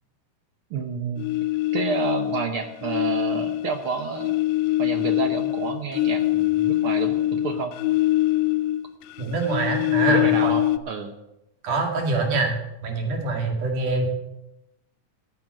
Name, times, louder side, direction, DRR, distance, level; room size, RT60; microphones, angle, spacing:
voice 1, 0.7-1.3 1.7-4.3 4.8-7.8 10.1-11.1, right 5 dB, 65° right, 6 dB, 1.4 m, -29 dB
sound 1, 1.2-2.5 2.8-8.9 9.2-10.8, left 15 dB, 85° left, 2.1 m, -23 dB
voice 2, 9.2-10.5 11.6-12.6 12.8-14.1, right 3 dB, 90° right, 2 dB, 3.8 m, -24 dB
14.0 x 7.9 x 7.4 m, 0.89 s
omnidirectional pair, 3.5 m